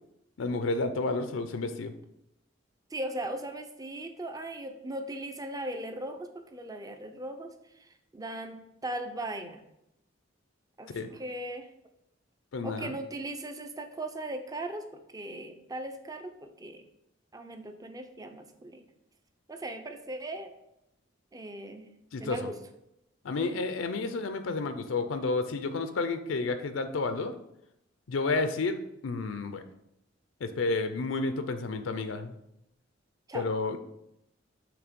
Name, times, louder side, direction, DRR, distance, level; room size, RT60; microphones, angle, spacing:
voice 1, 0.4-1.9 10.9-11.1 12.5-12.9 22.1-22.5 23.2-27.3 28.1-29.6 30.4-32.3 33.3-33.8, left 3 dB, 80° left, 9 dB, 0.5 m, -31 dB
voice 2, 2.9-7.5 7.8-9.6 10.8-11.7 12.6-16.8 17.3-18.8 19.5-20.5 21.3-21.9 22.2-22.6 23.4-23.6 33.3-33.5, right 1 dB, 20° right, 6 dB, 0.5 m, -38 dB
6.0 x 3.5 x 5.1 m, 0.83 s
head